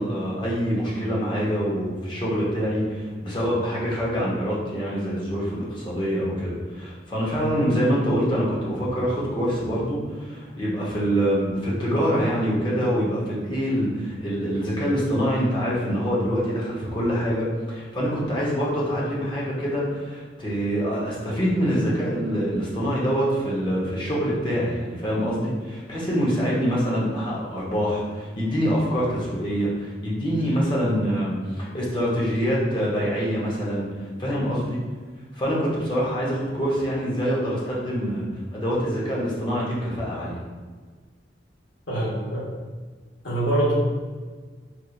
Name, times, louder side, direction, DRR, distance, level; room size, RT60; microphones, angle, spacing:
voice 1, 0.0-34.8 35.4-38.2 38.5-40.4, equal, 25° left, -6 dB, 0.9 m, -25 dB
voice 2, 41.9-42.4 43.2-43.7, right 1 dB, 90° left, -7 dB, 1.4 m, -24 dB
4.3 x 2.6 x 2.4 m, 1.4 s
head